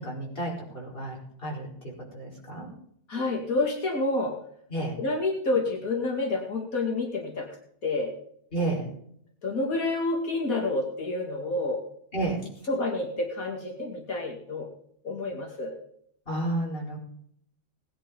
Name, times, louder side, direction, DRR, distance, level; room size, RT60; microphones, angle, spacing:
voice 1, 0.0-2.7 4.7-4.9 8.5-8.9 12.1-12.4 16.3-17.0, right 2 dB, 40° left, -3 dB, 5.0 m, -31 dB
voice 2, 3.1-4.3 5.0-7.5 7.8-8.1 9.4-11.8 12.7-14.7 15.0-15.8, left 2 dB, 85° left, 0 dB, 2.8 m, -28 dB
18.5 x 10.0 x 5.4 m, 0.68 s
omnidirectional pair, 1.4 m